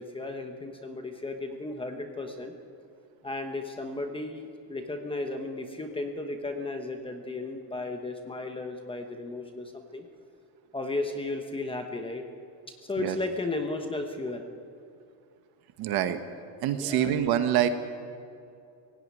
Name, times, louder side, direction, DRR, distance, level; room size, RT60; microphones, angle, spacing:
voice 1, 0.0-2.5 3.2-10.1 10.7-12.2 12.9-14.4 16.7-17.1, left 2 dB, 10° left, 4 dB, 1.0 m, -34 dB
voice 2, 15.8-16.2 16.6-17.7, right 11 dB, 50° right, 8 dB, 1.5 m, -25 dB
22.0 x 17.0 x 9.6 m, 2.5 s
cardioid pair, 175°, 49 cm